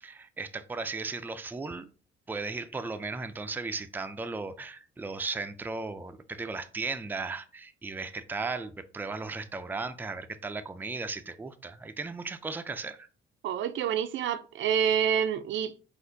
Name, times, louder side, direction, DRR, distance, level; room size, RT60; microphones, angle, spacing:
voice 1, 0.0-1.9 2.3-13.1, right 3 dB, 10° right, 0.4 m, -36 dB
voice 2, 13.4-15.8, right 8 dB, 75° right, 0.5 m, -27 dB
4.3 x 2.5 x 3.8 m
cardioid pair, 90°, 20 cm